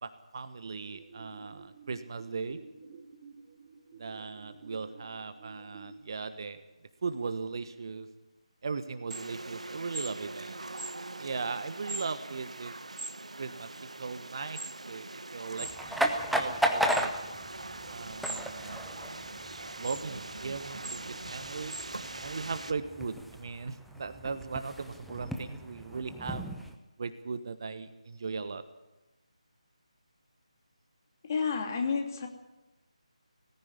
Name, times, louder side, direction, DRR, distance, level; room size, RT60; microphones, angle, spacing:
voice 1, 0.0-2.6 4.0-6.6 7.0-8.1 8.6-10.7 11.2-12.7 13.4-14.6 14.9-15.7 16.0-17.1 17.9-19.3 19.8-21.8 22.2-26.4 27.0-28.6, right 4 dB, 40° right, 10 dB, 1.3 m, -38 dB
sound 1, 0.9-5.9, right 4 dB, 25° right, 2.4 m, -51 dB
sound 2, 9.1-22.7, right 2 dB, 65° right, 1.2 m, -41 dB
sound 3, 15.6-26.7, equal, ahead, 0.8 m, -35 dB
voice 2, 31.2-32.3, left 5 dB, 30° left, 4 dB, 2.7 m, -30 dB
18.5 x 15.0 x 9.8 m, 1.1 s
figure-of-eight pair, 155°, 4 cm